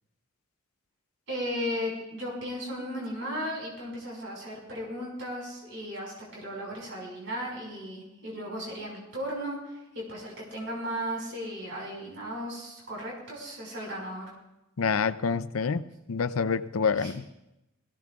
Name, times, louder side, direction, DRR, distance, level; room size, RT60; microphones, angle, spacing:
voice 1, 1.3-14.3 16.9-17.1, equal, 60° right, -3 dB, 5.2 m, -36 dB
voice 2, 14.8-15.8 16.1-17.2, left 5 dB, 80° left, 13 dB, 0.6 m, -27 dB
22.0 x 16.5 x 2.4 m, 0.90 s
head